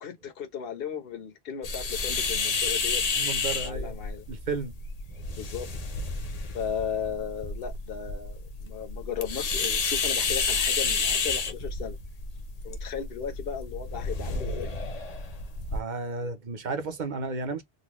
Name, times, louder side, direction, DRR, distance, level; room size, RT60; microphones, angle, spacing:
voice 1, 0.0-4.2 5.3-5.7 6.5-12.0 12.6-14.7, left 7 dB, 65° left, 1.1 m, -36 dB
sound 1, 1.6-15.8, left 4 dB, 45° left, 0.7 m, -30 dB
voice 2, 3.2-4.0 4.3-4.7 15.7-17.6, right 3 dB, 50° right, 0.8 m, -33 dB
3.9 x 2.1 x 3.0 m
omnidirectional pair, 1.0 m